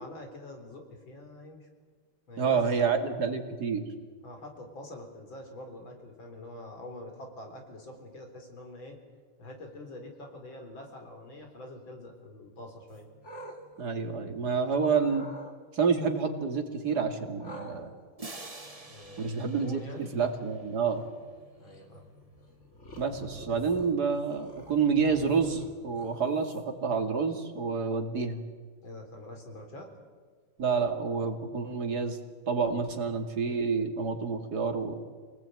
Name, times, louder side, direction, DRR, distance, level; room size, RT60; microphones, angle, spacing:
voice 1, 0.0-1.7 2.3-2.9 4.2-9.0 9.4-13.1 18.8-20.1 21.6-22.1 28.8-29.9, left 1 dB, 60° left, 4 dB, 4.6 m, -45 dB
voice 2, 2.4-3.8 13.8-15.3 15.7-17.9 19.2-19.8 20.1-21.0 23.0-28.4 30.6-32.2 32.5-35.0, right 5 dB, 45° right, 5 dB, 2.9 m, -28 dB
sound 1, 12.9-14.6 15.0-15.5 17.4-26.9, equal, 30° left, 2.7 m, -49 dB
sound 2, 18.2-21.0, right 2 dB, 20° right, 1.4 m, -47 dB
27.0 x 19.5 x 9.2 m, 1.6 s
omnidirectional pair, 2.4 m